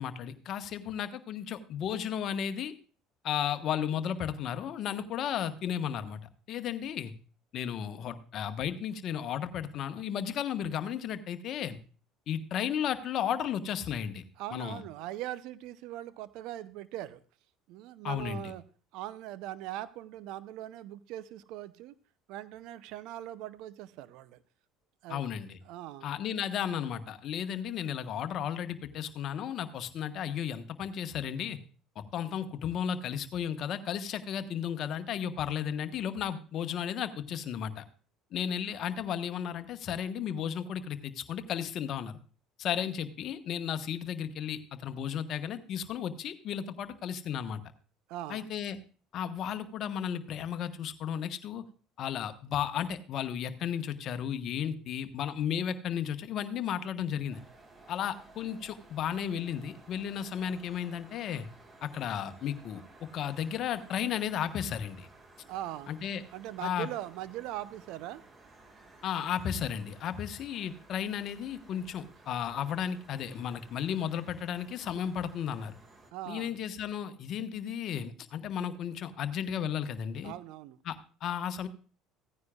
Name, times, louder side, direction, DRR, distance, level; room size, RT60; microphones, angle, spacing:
voice 1, 0.0-2.7 3.2-6.2 6.5-7.1 7.5-11.8 12.3-14.2 14.5-14.8 18.0-18.5 25.1-25.6 26.0-31.6 32.0-37.9 38.3-42.2 42.6-47.6 48.3-48.8 49.1-51.6 52.0-57.4 57.9-61.5 61.8-62.8 63.1-65.1 65.9-66.2 66.6-66.9 69.0-75.7 76.3-80.3 80.8-81.7, left 9 dB, 55° left, 1.1 m, -34 dB
voice 2, 14.4-17.2 17.7-18.6 18.9-21.9 22.3-24.4 25.0-25.2 25.7-26.1 48.1-48.5 65.5-65.9 66.3-68.2 76.1-76.5 80.2-80.8, right 14 dB, 70° right, 0.6 m, -40 dB
sound 1, 57.3-76.1, right 2 dB, 30° right, 1.9 m, -56 dB
16.0 x 9.6 x 2.3 m
hypercardioid pair, 75°, 0 cm